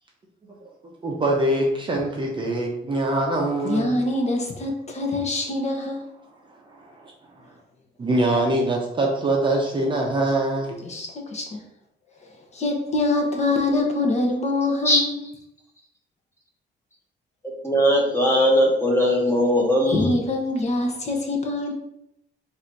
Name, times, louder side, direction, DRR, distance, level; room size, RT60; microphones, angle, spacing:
voice 1, 1.0-3.9 6.5-7.4 8.0-10.8, right 1 dB, 25° right, -1 dB, 0.7 m, -24 dB
voice 2, 3.6-6.0 10.8-11.6 12.5-15.3 19.9-21.7, left 2 dB, 35° left, 2 dB, 0.9 m, -24 dB
voice 3, 17.6-20.1, equal, 15° left, -2 dB, 1.1 m, -19 dB
3.9 x 2.7 x 4.5 m, 0.77 s
cardioid pair, 135°, 20 cm